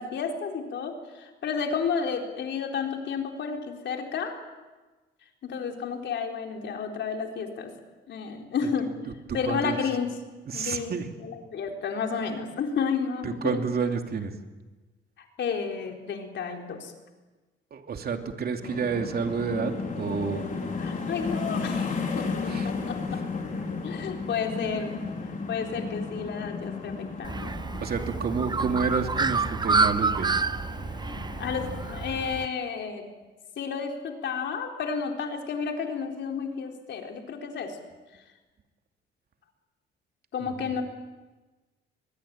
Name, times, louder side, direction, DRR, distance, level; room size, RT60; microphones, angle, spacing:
voice 1, 0.0-4.4 5.4-7.7 8.1-9.0 9.3-10.1 10.5-13.6 15.4-16.9 20.8-23.5 23.8-25.1 25.5-27.6 31.4-33.1 33.6-37.8 40.3-40.8, left 6 dB, 65° left, 3 dB, 4.1 m, -31 dB
voice 2, 9.3-9.8 10.5-11.1 13.2-14.3 17.7-20.4 22.5-22.7 23.1-23.2 27.8-30.4 40.6-40.7, right 5 dB, 50° right, 5 dB, 2.9 m, -29 dB
sound 1, 18.6-32.0, left 4 dB, 40° left, 4.8 m, -34 dB
Bird, 27.2-32.5, right 4 dB, 20° right, 0.8 m, -28 dB
23.5 x 21.0 x 9.0 m, 1.2 s
cardioid pair, 90°, 20 cm